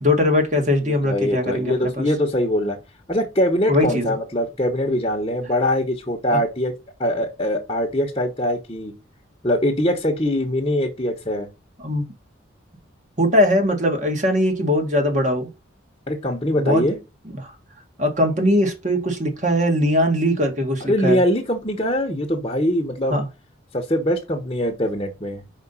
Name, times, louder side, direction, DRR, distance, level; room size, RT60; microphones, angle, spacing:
voice 1, 0.0-2.1 3.7-4.1 6.3-6.4 11.8-12.1 13.2-15.5 16.6-16.8 17.3-17.5 18.0-21.2 23.1-23.2, left 1 dB, 35° right, 1.9 m, -20 dB
voice 2, 0.8-2.8 3.1-6.7 7.0-8.9 9.4-11.5 16.1-17.0 20.9-23.2 23.7-25.4, equal, 25° left, 1.1 m, -22 dB
5.3 x 5.0 x 5.5 m
head